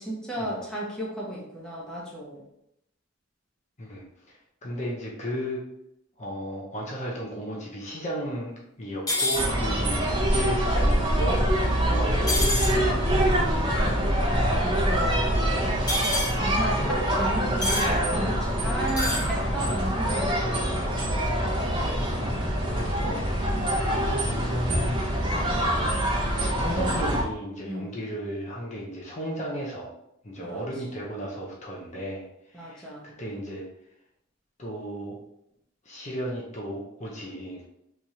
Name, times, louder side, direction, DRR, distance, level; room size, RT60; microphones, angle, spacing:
voice 1, 0.0-2.4 11.8-12.0 14.3-20.6 27.6-27.9 30.4-30.6 32.5-33.1, right 1 dB, 5° left, -5 dB, 0.8 m, -34 dB
voice 2, 3.8-5.6 6.2-13.2 13.6-14.2 21.9-23.2 23.9-25.0 25.3-29.9 30.2-32.9 33.2-33.7 34.6-35.2 35.8-37.7, equal, 35° left, -3 dB, 0.7 m, -35 dB
sound 1, 9.1-9.4 12.3-12.7 15.9-16.3 17.6-17.9 18.9-19.2, left 2 dB, 20° left, 1.1 m, -26 dB
sound 2, 9.3-27.2, equal, 25° right, 0.7 m, -25 dB
3.5 x 3.0 x 2.7 m, 0.79 s
head